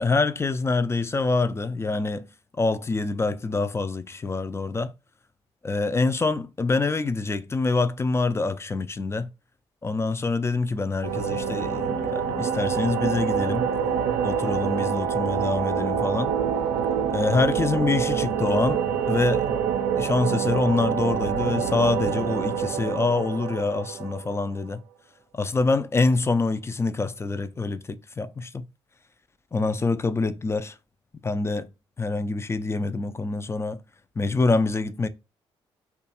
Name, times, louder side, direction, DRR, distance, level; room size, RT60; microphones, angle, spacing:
voice 1, 0.0-2.3 2.6-4.9 5.6-9.3 9.8-13.7 14.2-16.3 17.1-19.5 20.0-24.8 25.3-28.7 29.5-30.8 31.2-31.7 32.0-33.8 34.2-35.1, left 3 dB, 20° left, 0.4 m, -25 dB
sound 1, 11.0-24.6, right 7 dB, 65° right, 0.5 m, -26 dB
2.5 x 2.3 x 2.8 m
hypercardioid pair, 45°, 14 cm